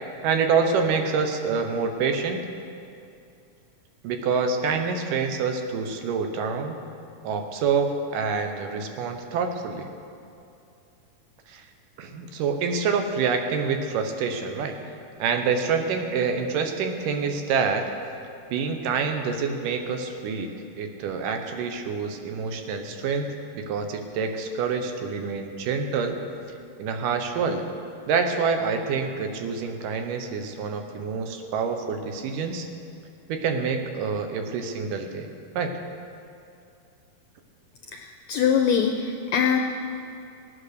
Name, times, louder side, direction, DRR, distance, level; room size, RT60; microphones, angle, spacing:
voice 1, 0.2-2.5 4.0-6.8 7.2-9.9 11.5-11.6 12.0-14.8 15.2-17.8 18.5-26.2 26.8-27.7 28.1-32.7 33.3-35.3 35.6-35.8, right 5 dB, 80° right, 5 dB, 2.5 m, -27 dB
voice 2, 37.9-39.6, left 7 dB, 80° left, 3 dB, 1.6 m, -23 dB
17.0 x 8.8 x 6.6 m, 2.5 s
omnidirectional pair, 3.8 m